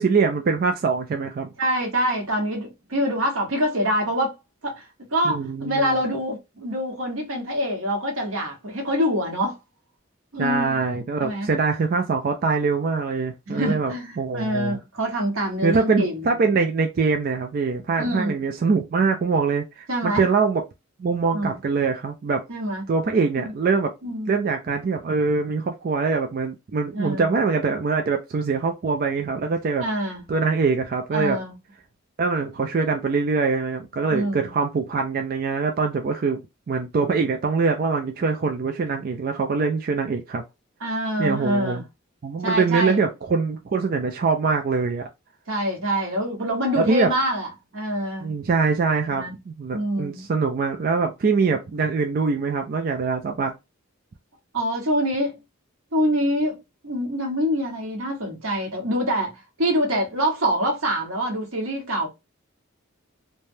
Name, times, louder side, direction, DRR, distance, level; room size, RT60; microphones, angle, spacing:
voice 1, 0.0-1.5 5.2-6.0 10.4-14.8 15.6-20.6 21.0-22.4 22.9-23.9 24.3-29.8 30.3-31.4 32.2-36.4 36.7-40.4 41.2-41.8 42.2-45.1 46.8-47.1 48.2-53.5, right 4 dB, 45° right, 0.3 m, -23 dB
voice 2, 1.6-4.4 4.6-9.6 10.3-10.8 11.2-11.5 13.5-16.4 18.0-18.4 19.9-20.2 21.3-21.6 22.5-22.8 23.4-23.5 24.0-24.4 26.9-27.4 29.8-30.2 31.1-31.5 34.1-34.5 40.8-41.8 42.4-43.0 45.5-48.4 49.1-49.3 49.7-50.3 51.5-51.6 54.5-55.4 55.9-56.6 56.8-62.1, equal, 85° right, 1.2 m, -25 dB
3.2 x 2.2 x 2.6 m
head